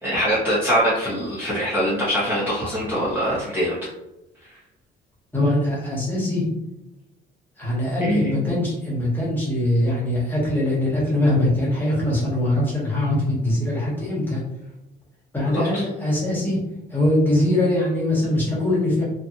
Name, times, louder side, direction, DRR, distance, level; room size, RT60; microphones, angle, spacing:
voice 1, 0.0-3.8 8.0-8.3 15.5-15.8, equal, 10° right, -9 dB, 1.0 m, -23 dB
voice 2, 5.3-6.5 7.6-14.4 15.3-16.6 16.9-19.0, left 1 dB, 10° left, -6 dB, 1.3 m, -22 dB
2.8 x 2.4 x 2.5 m, 0.93 s
cardioid pair, 110°, 17 cm